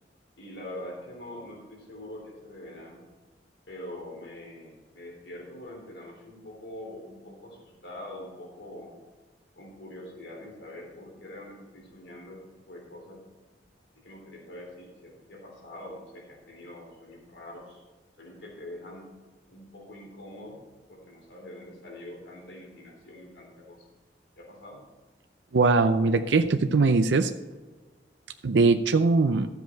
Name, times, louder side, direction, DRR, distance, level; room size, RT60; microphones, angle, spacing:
voice 1, 0.4-3.0 3.7-9.0 9.6-12.4 12.7-13.2 14.0-17.8 18.2-19.1 19.5-20.6 20.9-23.8 24.4-24.8, left 1 dB, 85° left, -1 dB, 3.5 m, -44 dB
voice 2, 25.5-27.3 28.4-29.5, right 3 dB, 90° right, 8 dB, 0.6 m, -21 dB
12.5 x 7.9 x 4.6 m, 1.3 s
head